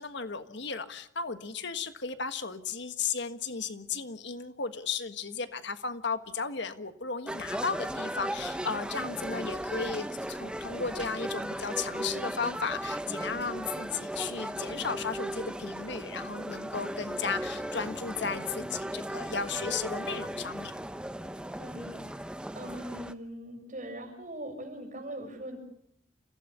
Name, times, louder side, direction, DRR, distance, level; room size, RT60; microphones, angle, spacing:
voice 1, 0.0-20.7, left 5 dB, 65° left, 10 dB, 1.5 m, -35 dB
sound 1, 7.3-23.1, right 1 dB, 5° right, 0.9 m, -36 dB
voice 2, 21.6-22.0 22.5-25.6, right 1 dB, 40° right, 2 dB, 7.1 m, -41 dB
29.5 x 16.0 x 6.9 m, 0.70 s
head